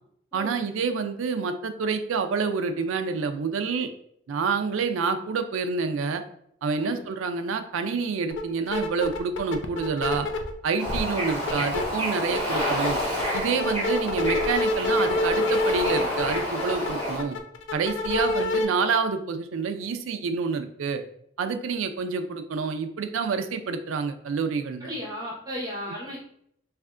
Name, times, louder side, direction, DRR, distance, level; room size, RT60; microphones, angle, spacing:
voice 1, 0.3-3.9 4.3-6.2 6.6-10.3 10.6-13.0 13.3-17.4 17.7-21.0 21.4-24.9 25.9-26.0, right 5 dB, 90° right, 8 dB, 0.4 m, -28 dB
sound 1, 8.3-8.4 8.7-10.5 10.9-11.8 12.2-18.7, left 2 dB, 70° left, 0.4 m, -27 dB
Bird / Ocean, 10.8-17.2, equal, 15° left, 1.1 m, -29 dB
voice 2, 24.8-26.2, left 1 dB, 20° right, -5 dB, 1.0 m, -34 dB
3.5 x 3.3 x 2.4 m, 0.69 s
head